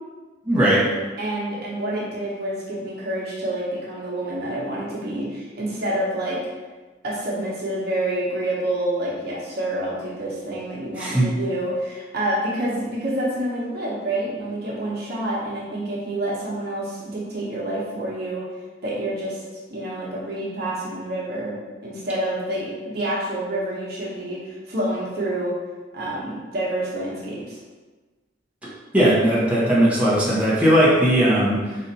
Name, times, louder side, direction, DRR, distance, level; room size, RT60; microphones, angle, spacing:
voice 1, 0.4-0.8 11.0-11.3 28.9-31.8, right 1 dB, 10° right, -9 dB, 1.0 m, -18 dB
voice 2, 1.2-6.5 7.0-18.4 18.8-19.4 19.7-21.5 21.8-25.6 25.9-27.6, right 1 dB, 60° right, -6 dB, 1.1 m, -28 dB
4.0 x 2.6 x 4.1 m, 1.3 s
head